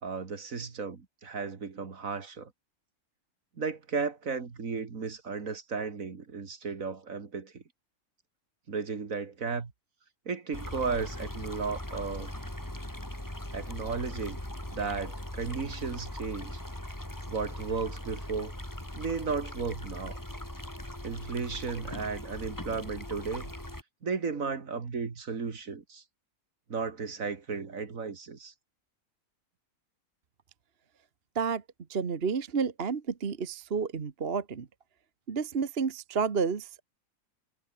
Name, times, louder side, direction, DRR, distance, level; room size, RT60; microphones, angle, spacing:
voice 1, 0.0-2.5 3.6-7.6 8.7-9.7 10.3-12.3 13.5-14.4 14.7-16.6 17.3-18.6 19.0-20.2 21.0-23.5 24.0-26.0 26.7-28.5, right 5 dB, 65° right, 2.4 m, -34 dB
sound 1, 10.5-23.8, left 1 dB, 10° left, 3.6 m, -40 dB
voice 2, 31.9-34.7 35.3-36.8, right 5 dB, 45° right, 1.4 m, -30 dB
omnidirectional pair, 1.6 m